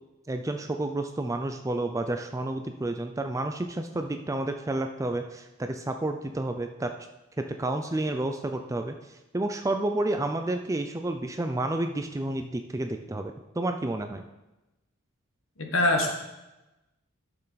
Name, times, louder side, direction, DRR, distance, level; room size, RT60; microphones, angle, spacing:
voice 1, 0.3-6.9 7.4-9.0 9.3-14.2, right 2 dB, 15° right, 5 dB, 0.4 m, -30 dB
voice 2, 15.6-16.1, left 2 dB, 70° left, 3 dB, 1.5 m, -23 dB
12.0 x 6.7 x 4.1 m, 1.0 s
head